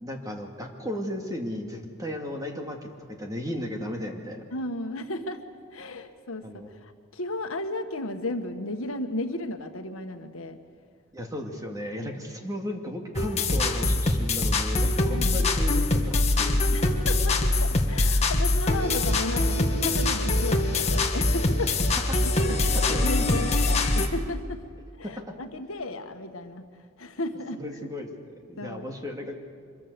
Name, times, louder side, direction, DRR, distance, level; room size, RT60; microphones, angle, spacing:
voice 1, 0.0-4.4 6.4-6.7 11.1-16.6 21.6-21.7 22.5-23.7 25.0-25.1 27.5-29.4, left 1 dB, 15° right, 2 dB, 2.3 m, -35 dB
voice 2, 4.5-5.4 5.7-10.6 12.0-12.1 15.1-15.4 16.7-21.9 22.4-22.5 22.8-24.6 25.0-26.7 27.0-27.6 28.6-28.9, left 1 dB, 70° left, 6 dB, 1.5 m, -34 dB
sound 1, 13.1-24.1, left 2 dB, 30° left, 1.8 m, -23 dB
25.5 x 23.0 x 6.9 m, 2.2 s
head